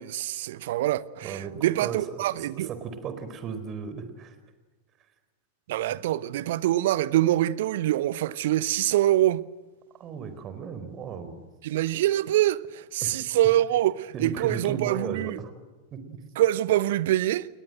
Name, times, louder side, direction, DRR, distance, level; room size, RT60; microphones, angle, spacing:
voice 1, 0.0-2.7 5.7-9.4 11.6-15.4 16.4-17.5, right 14 dB, 55° right, 0.9 m, -25 dB
voice 2, 1.2-1.5 1.8-4.4 5.9-6.0 10.0-11.4 13.0-13.1 14.1-15.5 15.9-16.2, right 6 dB, 30° right, 4.2 m, -36 dB
29.5 x 21.5 x 7.8 m
figure-of-eight pair, 90°, 0 cm